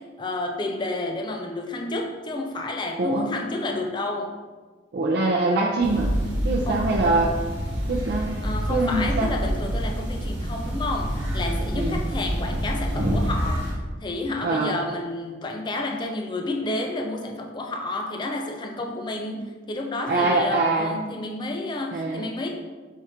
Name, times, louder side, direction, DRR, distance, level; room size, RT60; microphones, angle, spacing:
voice 1, 0.0-4.4 6.7-6.9 8.4-22.5, left 2 dB, 25° left, 2 dB, 0.3 m, -30 dB
voice 2, 4.9-6.1 6.4-7.4 7.9-8.3 8.7-9.3 11.7-12.0 14.4-14.8 20.1-20.9 21.9-22.2, right 2 dB, 60° right, -2 dB, 0.4 m, -23 dB
sound 1, 5.8-13.7, equal, 75° right, 1.1 m, -27 dB
4.6 x 2.4 x 4.3 m, 1.4 s
head